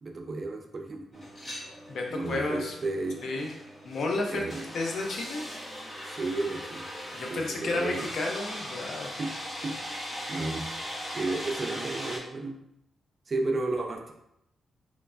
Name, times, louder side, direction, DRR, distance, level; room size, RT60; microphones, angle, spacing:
voice 1, 0.0-1.2 2.1-3.2 4.3-4.7 6.1-6.9 7.3-8.0 9.1-9.3 9.6-10.7 11.1-12.6 13.3-14.1, right 2 dB, 45° right, 3 dB, 0.4 m, -33 dB
sound 1, 1.1-12.2, equal, 35° left, 0.7 m, -39 dB
voice 2, 1.9-2.7 3.2-3.5 3.8-4.4 4.7-5.4 7.1-9.1, left 2 dB, 70° left, 1 dB, 0.5 m, -31 dB
3.1 x 2.1 x 2.4 m, 0.78 s
cardioid pair, 85°, 0 cm